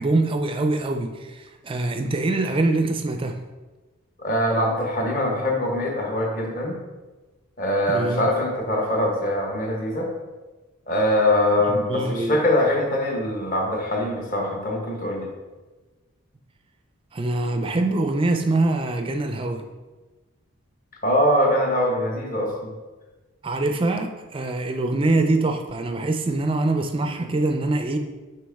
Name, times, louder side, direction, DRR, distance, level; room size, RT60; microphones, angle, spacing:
voice 1, 0.0-3.4 7.9-8.2 11.7-12.4 17.1-19.6 23.4-28.0, right 2 dB, 25° right, 5 dB, 0.4 m, -24 dB
voice 2, 4.2-6.8 7.6-10.1 10.9-15.3 21.0-22.7, left 1 dB, 40° left, 0 dB, 1.0 m, -23 dB
6.2 x 4.6 x 3.5 m, 1.2 s
head